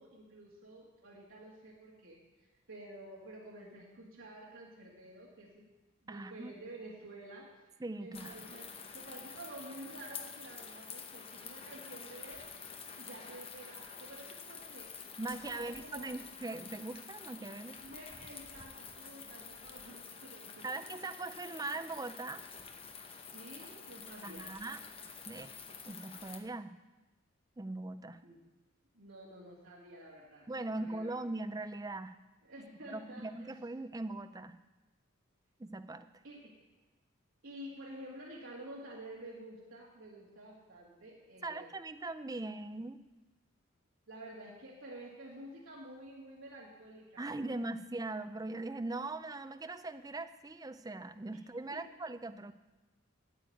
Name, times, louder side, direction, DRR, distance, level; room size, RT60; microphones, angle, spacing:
voice 1, 0.0-2.2 2.7-5.7 6.0-12.5 13.0-14.9 15.3-16.1 17.8-20.8 23.3-24.5 28.2-28.4 28.9-30.5 30.8-31.2 32.4-33.3 36.2-36.6 37.4-41.7 44.1-47.6 51.3-51.4 51.7-51.8, right 1 dB, 75° right, -5 dB, 2.3 m, -50 dB
voice 2, 6.1-6.5 7.8-8.5 15.2-17.8 20.6-22.4 24.2-24.8 25.3-25.5 25.9-26.8 27.6-28.2 30.5-32.2 32.9-34.6 35.6-36.1 41.4-43.0 47.2-52.5, right 2 dB, 15° right, 10 dB, 0.4 m, -40 dB
sound 1, 8.1-26.4, left 6 dB, 25° left, 0.9 m, -49 dB
9.2 x 8.0 x 9.1 m, 1.1 s
head